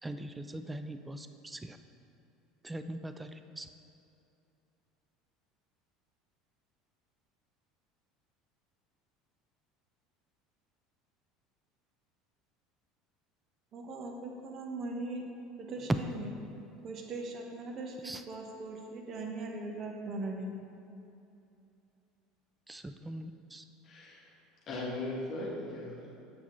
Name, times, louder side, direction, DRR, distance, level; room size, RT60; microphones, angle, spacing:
voice 1, 0.0-1.8 2.6-3.7 15.9-16.0 18.0-18.2 22.7-23.6, right 1 dB, 15° right, 9 dB, 0.4 m, -39 dB
voice 2, 13.7-15.2 15.6-16.3 16.8-20.5, right 2 dB, 45° right, 2 dB, 0.9 m, -40 dB
voice 3, 23.8-24.3 24.7-26.1, left 2 dB, 45° left, -5 dB, 1.3 m, -38 dB
7.4 x 5.8 x 3.1 m, 2.7 s
hypercardioid pair, 85°, 0 cm